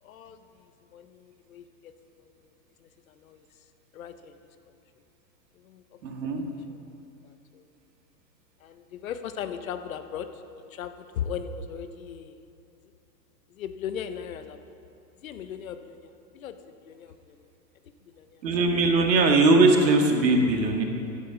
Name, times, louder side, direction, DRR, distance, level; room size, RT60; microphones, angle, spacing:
voice 1, 0.0-1.9 2.2-2.5 2.8-3.5 3.9-4.4 5.5-5.8 6.7-6.8 7.2-7.7 8.6-10.4 10.7-12.4 13.5-14.6 15.2-17.5 18.1-18.4, left 8 dB, 55° left, 10 dB, 0.8 m, -38 dB
voice 2, 6.0-6.4 18.4-20.8, right 2 dB, 80° right, 3 dB, 1.8 m, -20 dB
11.0 x 7.4 x 5.8 m, 2.5 s
hypercardioid pair, 160°, 50 cm